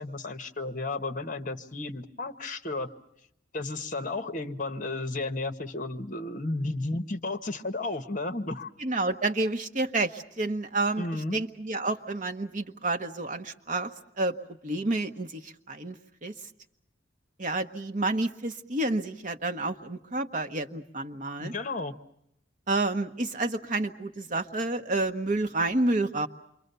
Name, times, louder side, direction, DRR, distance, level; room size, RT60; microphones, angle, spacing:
voice 1, 0.0-2.9 3.5-8.7 11.0-11.4 21.4-22.0, left 2 dB, 40° left, 9 dB, 1.2 m, -33 dB
voice 2, 8.8-11.1 11.3-13.9 14.2-14.4 14.6-16.3 17.4-21.5 22.7-26.3, right 2 dB, 40° right, 7 dB, 1.1 m, -29 dB
28.0 x 24.0 x 6.9 m, 0.78 s
head